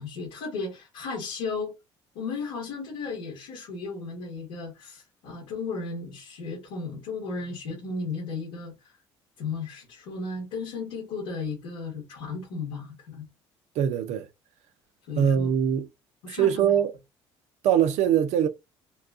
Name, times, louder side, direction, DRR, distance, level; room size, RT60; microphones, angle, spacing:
voice 1, 0.0-1.7 2.1-9.0 9.4-13.3 15.1-15.5 16.2-16.7, left 4 dB, 80° left, 1.7 m, -35 dB
voice 2, 13.8-14.3 15.2-15.9 16.3-16.9 17.6-18.5, right 9 dB, 65° right, 0.8 m, -22 dB
4.1 x 2.4 x 2.3 m
supercardioid pair, 75°, 12 cm